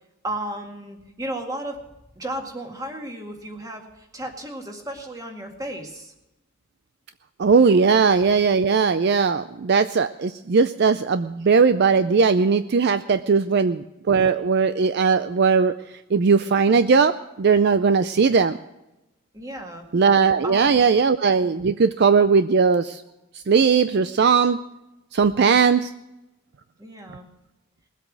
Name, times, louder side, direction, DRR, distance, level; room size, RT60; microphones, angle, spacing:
voice 1, 0.2-1.8 2.2-6.1 19.3-19.8 20.4-21.0 25.3-25.7 26.8-27.3, right 1 dB, 15° right, 3 dB, 2.0 m, -34 dB
voice 2, 7.4-15.7 16.1-18.6 19.9-23.0 23.5-24.6 25.1-25.9, right 5 dB, 50° right, 12 dB, 0.4 m, -19 dB
20.0 x 8.2 x 6.1 m, 0.95 s
head